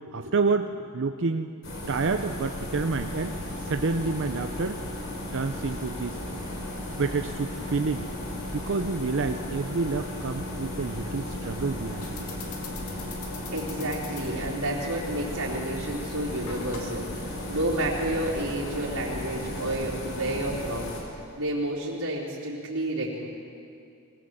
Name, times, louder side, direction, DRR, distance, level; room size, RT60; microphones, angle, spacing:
voice 1, 0.1-1.5 1.9-3.4 3.6-4.8 5.3-6.4 7.0-8.1 8.5-12.2, right 4 dB, 55° right, 7 dB, 0.6 m, -28 dB
sound 1, 1.6-21.0, left 1 dB, 60° left, 4.7 m, -35 dB
sound 2, 11.9-22.0, left 5 dB, 75° left, 2.5 m, -47 dB
voice 2, 13.5-20.9 21.4-23.3, right 1 dB, 75° right, -8 dB, 3.9 m, -30 dB
23.0 x 19.0 x 7.8 m, 2.4 s
head